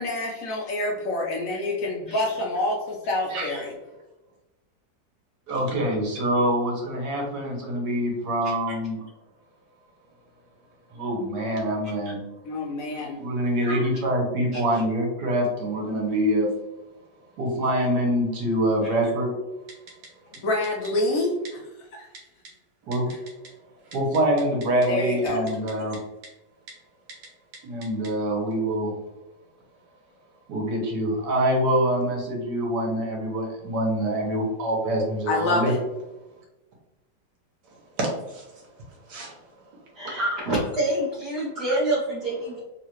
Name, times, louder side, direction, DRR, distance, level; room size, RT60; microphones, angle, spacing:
voice 1, 0.0-3.7 12.4-13.2 20.4-21.6 21.9-22.1 24.9-25.5 35.3-35.8, left 2 dB, 65° left, -1 dB, 0.9 m, -27 dB
voice 2, 3.3-3.6 5.5-9.0 10.9-12.2 13.1-16.5 17.4-19.3 22.9-23.1 23.9-26.0 27.6-28.9 30.5-35.7 38.0-38.4 39.1-39.3 40.2-40.3, right 1 dB, 65° right, -2 dB, 1.5 m, -25 dB
Typing, 19.7-20.1 20.3-20.4 20.6-20.9 21.4-21.5 22.1-22.5 22.9-23.5 23.8-24.9 25.3-26.0 26.2-26.3 26.7-26.8 27.1-27.3 27.5-28.1 28.5-28.6, right 3 dB, 90° right, 1.5 m, -43 dB
voice 3, 39.9-42.6, right 1 dB, 45° right, -7 dB, 0.9 m, -27 dB
3.7 x 2.4 x 2.9 m, 1.0 s
omnidirectional pair, 2.0 m